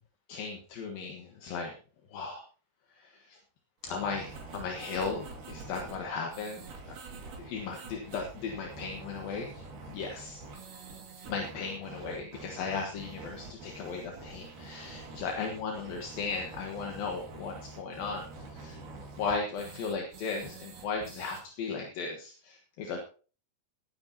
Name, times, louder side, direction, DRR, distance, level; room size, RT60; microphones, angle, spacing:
voice 1, 0.3-1.7 2.1-2.4 3.0-3.4 3.8-6.6 7.4-10.4 11.3-18.2 18.5-18.8 19.2-23.0, left 4 dB, 70° left, 1 dB, 3.0 m, -36 dB
sound 1, 3.8-21.4, right 3 dB, 60° right, 3.5 m, -46 dB
19.5 x 9.6 x 2.9 m, 0.38 s
omnidirectional pair, 4.6 m